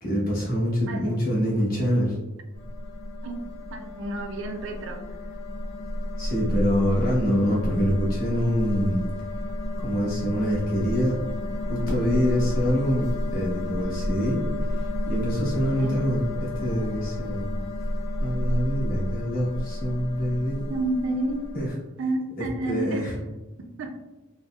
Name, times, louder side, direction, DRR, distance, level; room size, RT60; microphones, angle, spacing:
voice 1, 0.0-2.2 6.2-9.0 9.8-11.2 11.7-14.4 15.0-17.6 18.2-20.6 21.5-21.7 22.6-23.1, equal, 45° left, -5 dB, 1.0 m, -25 dB
voice 2, 0.9-1.2 3.2-3.4 3.7-5.2 15.8-16.0 20.7-21.5 22.0-23.1 23.6-24.0, right 2 dB, 65° right, 4 dB, 0.4 m, -30 dB
sound 1, 2.5-21.7, left 1 dB, 80° left, 0.9 m, -31 dB
4.1 x 2.0 x 2.2 m, 1.1 s
head